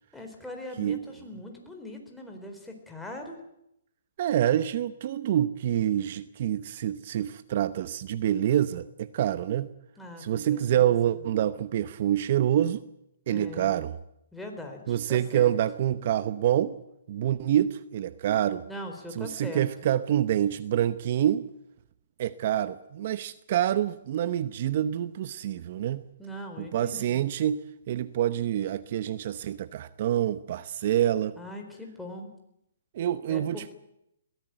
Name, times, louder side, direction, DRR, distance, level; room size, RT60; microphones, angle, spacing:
voice 1, 0.1-3.4 10.0-10.9 13.3-13.8 14.3-15.5 18.7-19.7 26.2-27.2 31.4-32.3 33.3-33.7, left 1 dB, 5° left, 4.2 m, -41 dB
voice 2, 4.2-9.7 10.2-12.8 13.3-13.9 14.9-16.7 17.1-18.6 19.2-21.5 22.2-26.0 26.6-31.4 32.9-33.7, right 11 dB, 50° right, 0.9 m, -27 dB
22.0 x 17.0 x 9.2 m
hypercardioid pair, 145°, 0 cm